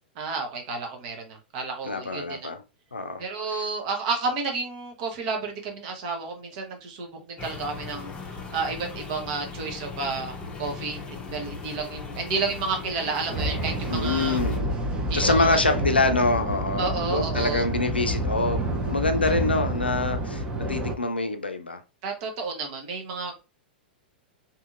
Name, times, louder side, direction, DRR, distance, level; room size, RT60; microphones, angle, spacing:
voice 1, 0.2-2.5 3.2-8.1 8.5-14.4 15.1-15.6 16.8-17.6 22.0-23.3, right 4 dB, 45° right, 0.9 m, -31 dB
voice 2, 1.8-2.6 2.9-3.2 3.5-3.7 13.9-14.6 15.1-21.8, left 3 dB, 80° left, 0.5 m, -25 dB
sound 1, 7.4-14.6, left 4 dB, 20° left, 0.7 m, -38 dB
sound 2, 13.3-20.9, right 1 dB, 15° right, 0.6 m, -28 dB
2.8 x 2.7 x 2.4 m
figure-of-eight pair, 100°, 5 cm